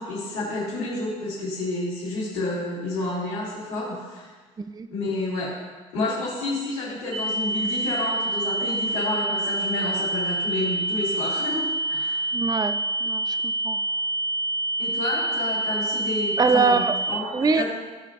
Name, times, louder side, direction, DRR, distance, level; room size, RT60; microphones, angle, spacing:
voice 1, 0.0-4.3 4.9-5.5 5.9-12.2 14.8-16.8 17.1-17.6, left 2 dB, 75° left, -11 dB, 3.1 m, -29 dB
sound 1, 7.1-17.1, right 2 dB, 85° right, 2.8 m, -27 dB
voice 2, 12.3-13.8 16.4-17.0 17.3-17.6, right 4 dB, 25° right, 10 dB, 0.5 m, -23 dB
16.0 x 6.3 x 2.7 m, 1.4 s
hypercardioid pair, 55°, 17 cm